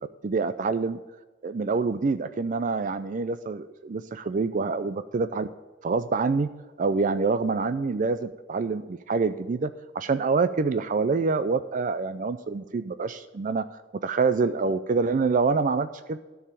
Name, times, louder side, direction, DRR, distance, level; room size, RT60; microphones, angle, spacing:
voice 1, 0.2-1.0 1.4-5.5 5.8-6.5 6.8-13.6 14.0-16.2, right 4 dB, 45° right, 12 dB, 0.4 m, -26 dB
13.0 x 4.8 x 8.6 m, 1.2 s
head